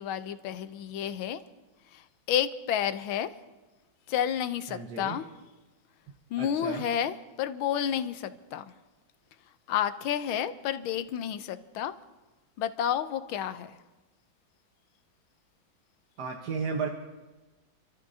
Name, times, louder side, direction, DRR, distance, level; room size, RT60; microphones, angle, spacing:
voice 1, 0.0-1.4 1.9-3.3 4.1-5.3 6.3-8.7 9.7-11.9 12.6-13.8, left 9 dB, 90° left, 11 dB, 1.6 m, -30 dB
voice 2, 4.7-5.2 6.4-6.8 16.2-16.9, right 5 dB, 60° right, 1 dB, 1.6 m, -33 dB
28.5 x 13.5 x 2.8 m, 1.1 s
omnidirectional pair, 2.2 m